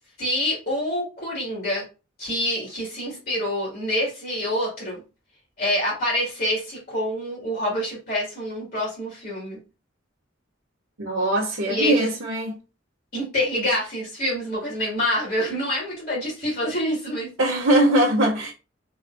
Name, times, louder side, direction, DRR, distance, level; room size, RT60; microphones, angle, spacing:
voice 1, 0.2-1.9 2.2-5.0 5.6-9.6 11.7-12.1 13.1-17.3, left 1 dB, 45° left, 2.0 m, -26 dB
voice 2, 11.0-12.6 17.4-18.5, right 1 dB, 80° right, 0.8 m, -21 dB
3.8 x 3.3 x 2.6 m
head